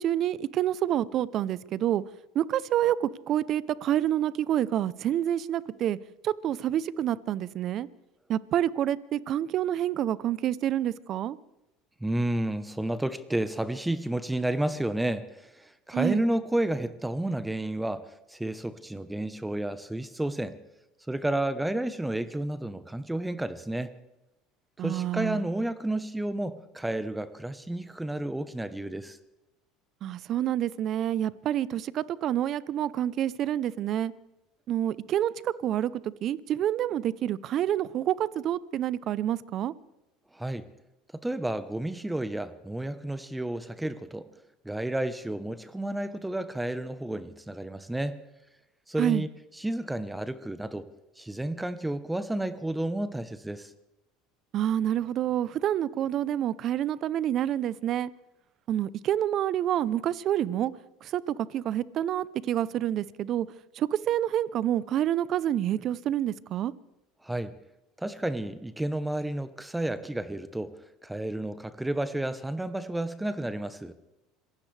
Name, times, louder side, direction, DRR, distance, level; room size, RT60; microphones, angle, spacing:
voice 1, 0.0-2.0 2.3-6.0 6.2-7.9 8.3-11.4 15.9-16.2 24.8-25.4 30.0-34.1 34.7-39.7 49.0-49.2 54.5-58.1 58.7-60.7 61.0-63.5 63.8-66.7, right 11 dB, 50° right, 19 dB, 0.6 m, -28 dB
voice 2, 12.0-20.5 21.1-23.9 24.8-29.2 40.3-40.7 41.1-44.3 44.6-48.2 48.9-49.3 49.5-50.9 51.2-53.7 67.2-67.5 68.0-70.7 71.0-73.9, right 1 dB, 5° right, 13 dB, 1.0 m, -31 dB
26.0 x 16.5 x 3.4 m, 0.94 s
supercardioid pair, 95°, 0 cm